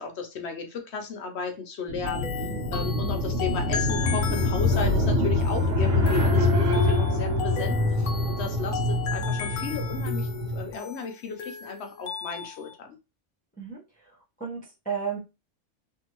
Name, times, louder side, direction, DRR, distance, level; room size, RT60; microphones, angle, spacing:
voice 1, 0.0-2.3 2.7-13.0, left 4 dB, 65° left, 4 dB, 0.8 m, -34 dB
sound 1, 1.9-10.7, left 2 dB, 75° right, 1.2 m, -25 dB
sound 2, 2.1-12.7, left 7 dB, 85° left, 1.0 m, -37 dB
voice 2, 13.6-15.2, right 6 dB, 10° left, -4 dB, 0.7 m, -34 dB
2.6 x 2.6 x 2.9 m, 0.27 s
omnidirectional pair, 1.3 m